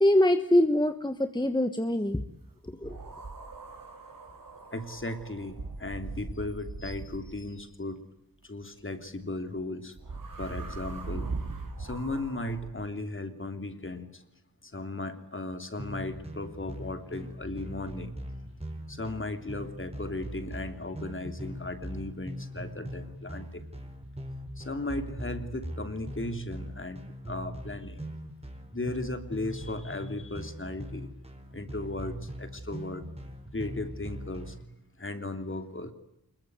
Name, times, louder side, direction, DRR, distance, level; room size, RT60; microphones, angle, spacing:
voice 1, 0.0-2.2 2.8-3.0, left 1 dB, 10° left, 9 dB, 1.3 m, -24 dB
sound 1, 2.8-7.6 9.9-12.7, right 3 dB, 65° right, 5.1 m, -40 dB
voice 2, 4.7-8.1 8.4-10.0 10.4-11.4 11.8-14.2 14.6-18.2 18.9-23.7 24.6-27.0 27.3-28.0 28.7-31.1 31.5-33.0 33.5-34.6 35.0-35.9, left 2 dB, 35° left, 8 dB, 3.1 m, -36 dB
sound 2, 15.8-34.6, equal, 15° right, 4.3 m, -41 dB
26.5 x 22.0 x 9.4 m, 0.84 s
wide cardioid pair, 90°, 35 cm